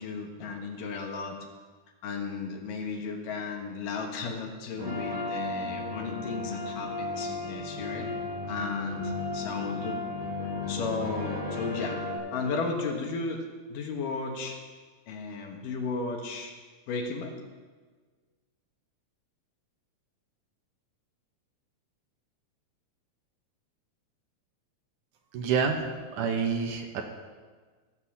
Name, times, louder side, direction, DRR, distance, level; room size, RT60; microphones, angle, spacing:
voice 1, 0.0-1.4 2.0-8.1 8.5-10.0 10.7-12.0 12.3-14.6 15.1-16.5 16.9-17.4, left 4 dB, 80° left, 2 dB, 3.0 m, -34 dB
sound 1, 4.8-12.2, left 3 dB, 90° right, 5.9 m, -34 dB
voice 2, 25.3-27.0, right 6 dB, 70° right, 3 dB, 2.6 m, -28 dB
14.5 x 7.6 x 7.2 m, 1.4 s
omnidirectional pair, 3.8 m